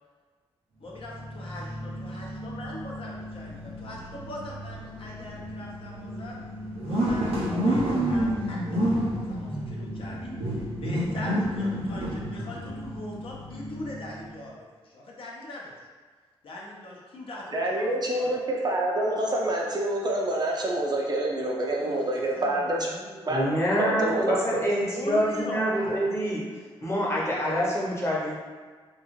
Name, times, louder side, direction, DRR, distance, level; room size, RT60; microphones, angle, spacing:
voice 1, 0.8-1.6 2.0-6.4 6.9-15.7 16.4-18.4 21.6-23.4 24.9-26.2, left 1 dB, 60° left, -4 dB, 0.6 m, -41 dB
sound 1, 0.9-14.3, equal, 85° right, 0.6 m, -30 dB
voice 2, 17.5-22.9 23.3-23.4 23.8-24.7, right 1 dB, 40° right, -2 dB, 0.5 m, -27 dB
voice 3, 23.3-26.5 26.8-28.4, equal, 25° left, -5 dB, 0.8 m, -26 dB
2.4 x 2.3 x 3.0 m, 1.5 s
cardioid pair, 75°, 10 cm